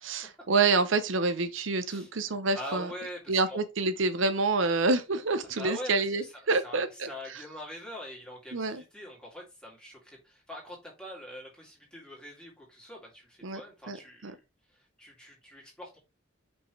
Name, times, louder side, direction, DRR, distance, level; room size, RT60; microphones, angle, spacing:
voice 1, 0.0-2.9 3.3-7.4 8.5-8.8 13.4-13.6 13.9-14.0 14.2-14.3, right 3 dB, 70° right, 0.7 m, -27 dB
voice 2, 2.5-3.6 5.6-6.3 6.6-14.4 15.0-16.0, left 1 dB, 5° left, 2.5 m, -43 dB
5.4 x 5.4 x 3.2 m
head